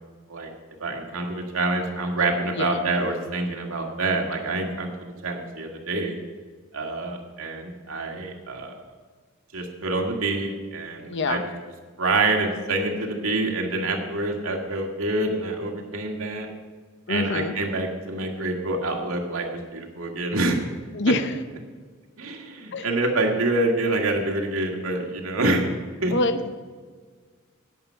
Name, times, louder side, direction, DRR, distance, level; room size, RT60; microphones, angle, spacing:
voice 1, 0.8-6.2 6.7-8.8 9.5-11.4 12.0-16.5 17.1-19.5 19.7-20.6 22.2-25.7 26.0-26.1, right 2 dB, 90° right, 1 dB, 2.0 m, -26 dB
voice 2, 2.5-2.8 11.1-11.4 17.1-17.5 20.9-21.3 22.7-22.9 26.1-26.6, left 2 dB, 60° left, 9 dB, 0.8 m, -25 dB
11.0 x 8.9 x 5.7 m, 1.5 s
head